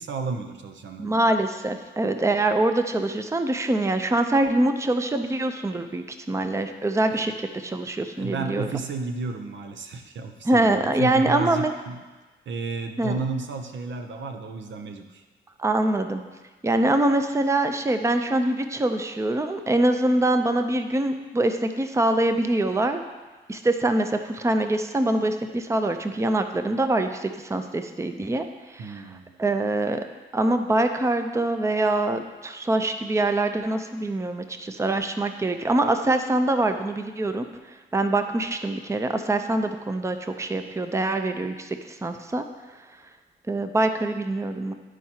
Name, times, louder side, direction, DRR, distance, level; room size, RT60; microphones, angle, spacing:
voice 1, 0.0-1.2 7.1-7.2 8.1-12.0 12.5-15.2 28.8-29.4, right 3 dB, 70° right, 6 dB, 0.7 m, -32 dB
voice 2, 1.0-8.7 10.5-11.7 13.0-13.2 15.6-16.2 16.6-23.0 23.5-28.5 28.7-28.9 29.4-30.0 30.3-37.4 37.9-42.4 43.5-44.7, right 2 dB, 15° right, 7 dB, 0.6 m, -24 dB
12.0 x 4.6 x 2.9 m, 1.2 s
cardioid pair, 65°, 20 cm